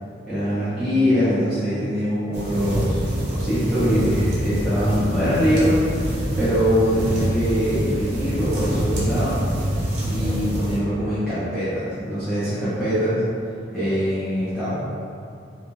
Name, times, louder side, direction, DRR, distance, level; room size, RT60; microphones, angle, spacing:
voice 1, 0.3-9.4 10.1-13.2 13.7-14.8, equal, ahead, -15 dB, 0.6 m, -23 dB
sound 1, 2.3-10.8, equal, 65° right, 0.7 m, -25 dB
2.6 x 2.3 x 3.0 m, 2.4 s
head